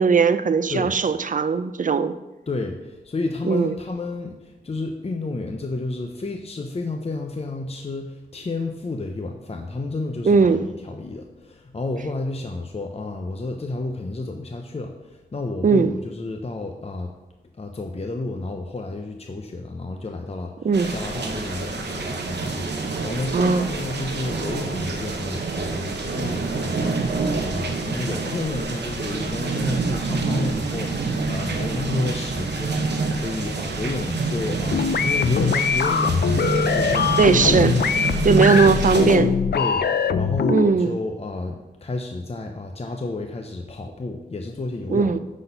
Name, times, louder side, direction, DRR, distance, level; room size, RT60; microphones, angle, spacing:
voice 1, 0.0-2.1 3.4-3.7 10.3-10.6 15.6-15.9 20.6-20.9 23.3-23.7 37.2-39.4 40.5-41.0 44.9-45.2, right 5 dB, 50° right, 12 dB, 0.5 m, -19 dB
voice 2, 2.5-17.1 17.6-37.4 38.3-38.6 39.5-39.8 40.1-45.2, left 2 dB, 35° left, 3 dB, 0.7 m, -31 dB
sound 1, 20.7-39.2, right 3 dB, 85° right, 0.9 m, -27 dB
sound 2, 34.7-40.7, left 6 dB, 75° left, 0.4 m, -22 dB
10.0 x 4.2 x 5.4 m, 1.1 s
wide cardioid pair, 75°, 17 cm